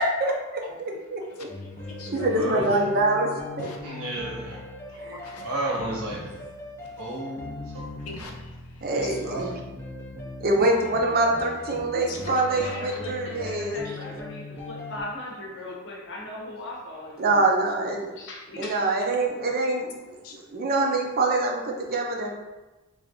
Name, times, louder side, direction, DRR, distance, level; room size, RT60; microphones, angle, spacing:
voice 1, 0.0-1.5 2.1-3.7 5.0-5.2 8.8-9.5 10.4-14.0 17.2-18.1 18.6-22.3, right 2 dB, 45° right, 1 dB, 0.5 m, -25 dB
sound 1, 1.5-15.0, left 2 dB, 10° left, 0.5 m, -39 dB
voice 2, 1.6-2.3 3.6-3.8 4.1-4.2 4.9-5.4 8.0-8.6 9.0-9.1 11.9-13.0 17.8-17.9 20.2-20.4 21.9-22.0, left 3 dB, 85° left, 2 dB, 0.6 m, -42 dB
voice 3, 2.2-2.9 3.8-4.6 5.3-6.3 7.0-7.4 7.7-7.9 8.9-9.6, right 1 dB, 80° right, -4 dB, 1.2 m, -32 dB
voice 4, 12.6-17.4 18.2-18.9, left 2 dB, 55° left, -2 dB, 0.8 m, -38 dB
3.4 x 2.5 x 3.7 m, 1.1 s
head